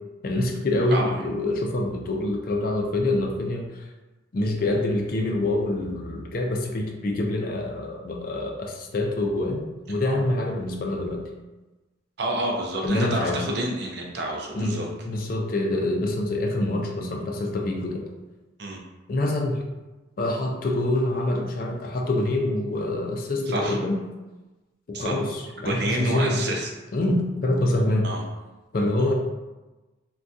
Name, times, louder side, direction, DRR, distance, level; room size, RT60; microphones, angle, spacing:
voice 1, 0.2-3.9 4.3-11.3 12.8-13.6 14.5-14.8 15.0-18.0 19.1-19.6 20.2-24.0 24.9-26.5 26.9-28.1 28.7-29.1, left 1 dB, 45° left, 1 dB, 0.4 m, -26 dB
voice 2, 12.2-14.9 18.6-18.8 23.5-23.8 24.9-25.2 25.6-26.7 28.0-28.2 29.0-29.1, right 1 dB, 55° right, 0 dB, 0.5 m, -29 dB
3.5 x 2.2 x 2.6 m, 1.1 s
head